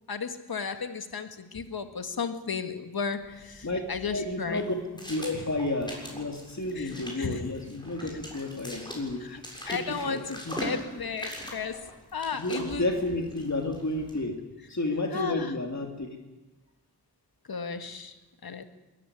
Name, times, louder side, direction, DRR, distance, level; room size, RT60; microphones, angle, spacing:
voice 1, 0.1-4.6 5.3-5.4 6.7-7.5 8.0-8.1 9.2-9.4 9.7-12.9 15.1-15.5 17.5-18.6, left 5 dB, 60° left, 8 dB, 1.8 m, -34 dB
sound 1, 3.2-14.2, equal, 10° left, 7.5 m, -42 dB
voice 2, 4.1-10.2 10.5-10.6 12.3-14.3 14.7-16.1, left 2 dB, 40° left, 2 dB, 3.0 m, -31 dB
21.5 x 14.5 x 9.8 m, 1.1 s
cardioid pair, 60°, 41 cm